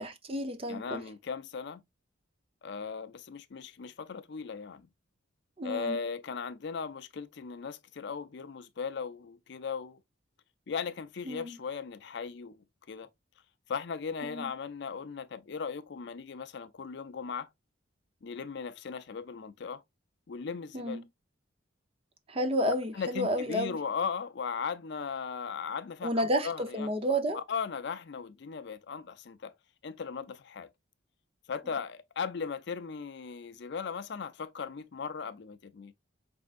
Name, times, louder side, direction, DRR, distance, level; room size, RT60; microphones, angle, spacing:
voice 1, 0.0-1.0 5.6-6.0 11.3-11.6 14.2-14.5 20.7-21.0 22.3-23.8 26.0-27.4, equal, 30° right, 0.7 m, -31 dB
voice 2, 0.7-1.8 2.6-4.9 5.6-10.0 10.7-13.1 13.7-17.5 18.2-19.8 20.3-21.0 22.9-26.9 27.3-29.5 29.8-30.7 31.5-35.9, left 5 dB, 55° left, 0.4 m, -37 dB
5.1 x 3.4 x 2.5 m
head